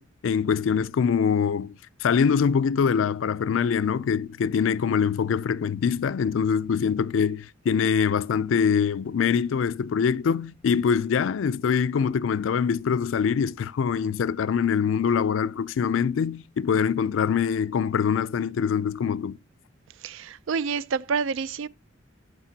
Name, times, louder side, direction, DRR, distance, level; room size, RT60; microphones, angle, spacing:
voice 1, 0.0-19.4, left 6 dB, 80° left, 0.4 m, -24 dB
voice 2, 20.0-21.7, right 5 dB, 80° right, 0.4 m, -28 dB
13.0 x 5.2 x 2.7 m
head